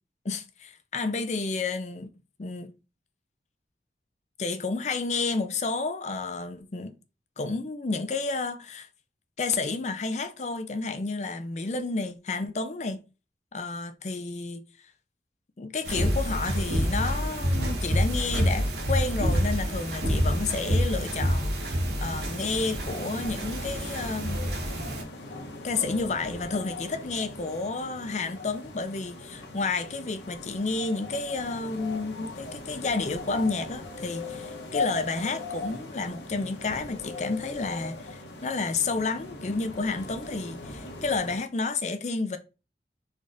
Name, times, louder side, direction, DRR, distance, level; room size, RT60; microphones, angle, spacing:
voice 1, 0.2-2.1 2.4-2.7 4.4-6.9 7.4-8.9 9.4-13.0 13.5-14.6 15.6-21.5 22.0-24.4 25.6-42.4, left 3 dB, 40° left, 0.5 m, -31 dB
sound 1, 15.8-25.0, equal, 70° right, 1.0 m, -27 dB
sound 2, 22.4-41.4, left 3 dB, 90° left, 0.9 m, -39 dB
4.0 x 3.4 x 2.5 m
head